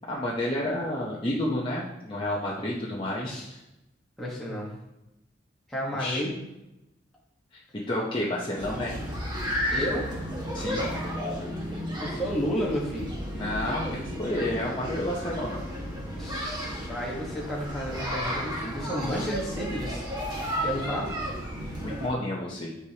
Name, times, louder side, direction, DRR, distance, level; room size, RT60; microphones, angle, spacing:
voice 1, 0.1-3.4 5.9-6.2 7.5-7.6 7.9-9.0 10.5-10.9 13.3-15.6 21.8-22.7, left 1 dB, 25° left, -5 dB, 0.9 m, -30 dB
voice 2, 3.2-3.5 4.2-4.7 5.7-6.3 9.7-10.1 12.0-13.1 16.1-20.0 20.6-21.1, equal, ahead, -7 dB, 1.4 m, -31 dB
sound 1, 8.6-22.1, equal, 25° right, 1.6 m, -33 dB
10.5 x 4.9 x 2.9 m, 0.92 s
head